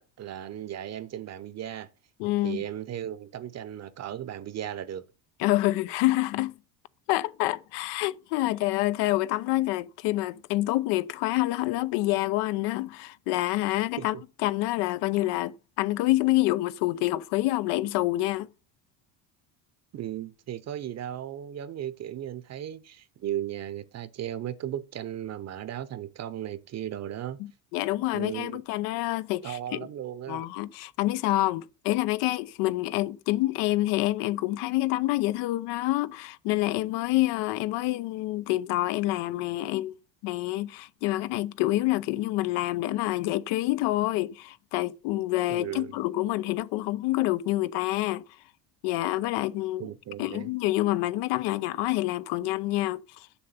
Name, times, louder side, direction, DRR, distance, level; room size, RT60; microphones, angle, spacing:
voice 1, 0.0-1.9 2.4-5.0 14.0-14.2 19.9-27.4 28.1-28.6 29.4-30.5 45.5-45.9 49.8-50.5, right 11 dB, 40° right, 0.8 m, -36 dB
voice 2, 2.2-2.6 5.4-6.5 7.1-14.1 14.4-18.5 27.4-29.8 30.3-40.0 40.2-48.2 48.8-49.9 50.2-53.3, left 17 dB, 75° left, 0.8 m, -27 dB
7.2 x 7.0 x 6.6 m
cardioid pair, 120°, 42 cm